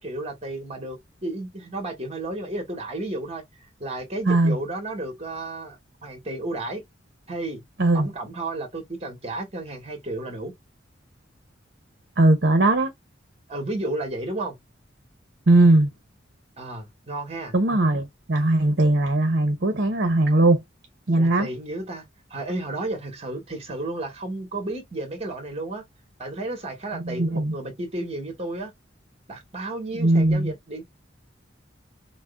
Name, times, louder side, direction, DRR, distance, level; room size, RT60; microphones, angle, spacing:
voice 1, 0.0-3.4 3.8-5.8 6.0-6.8 7.3-7.6 7.9-10.5 13.5-14.5 16.6-17.5 21.2-25.8 26.2-28.7 29.3-30.8, right 2 dB, 35° right, 1.7 m, -32 dB
voice 2, 4.3-4.6 7.8-8.1 12.2-12.9 15.5-15.9 17.5-20.6 21.1-21.5 26.9-27.5 30.0-30.5, right 2 dB, 60° right, 0.9 m, -19 dB
6.1 x 2.2 x 2.5 m
head